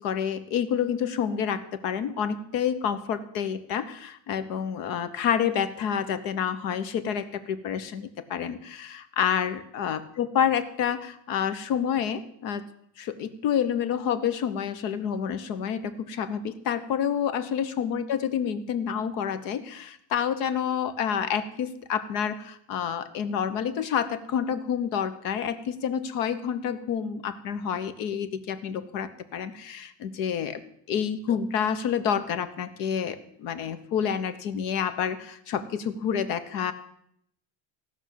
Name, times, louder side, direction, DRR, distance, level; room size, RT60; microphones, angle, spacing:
voice 1, 0.0-12.6 13.0-30.6 30.9-36.7, left 8 dB, 45° left, 11 dB, 1.1 m, -28 dB
16.0 x 6.2 x 8.5 m, 0.71 s
cardioid pair, 180°, 48 cm